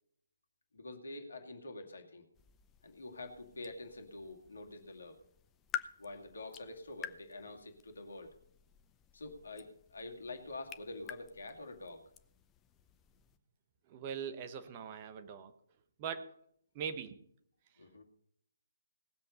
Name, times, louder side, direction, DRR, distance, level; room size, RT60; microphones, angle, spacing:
voice 1, 0.7-2.3 2.8-5.2 6.0-8.3 9.1-12.0 17.8-18.0, left 2 dB, 60° left, 3 dB, 2.3 m, -46 dB
sound 1, 2.3-13.4, left 9 dB, 15° left, 0.6 m, -50 dB
voice 2, 13.9-15.5 16.0-16.3 16.7-17.2, right 7 dB, 25° right, 8 dB, 1.0 m, -41 dB
18.5 x 7.7 x 5.5 m, 0.68 s
figure-of-eight pair, 140°, 0 cm